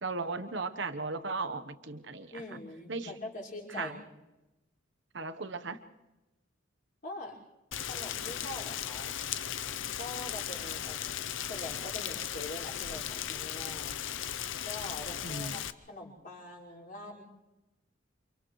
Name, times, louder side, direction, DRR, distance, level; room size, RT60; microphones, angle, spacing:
voice 1, 0.0-2.3 2.9-3.1 3.8-4.0 5.1-5.8 15.2-15.5, right 3 dB, 65° right, 11 dB, 1.1 m, -36 dB
voice 2, 2.3-4.1 7.0-7.4 7.9-9.2 10.0-11.2 11.5-14.0 14.6-17.2, left 2 dB, 45° left, -5 dB, 5.4 m, -43 dB
Rain, 7.7-15.7, left 10 dB, 80° left, 0.7 m, -37 dB
30.0 x 27.0 x 3.2 m, 1.0 s
head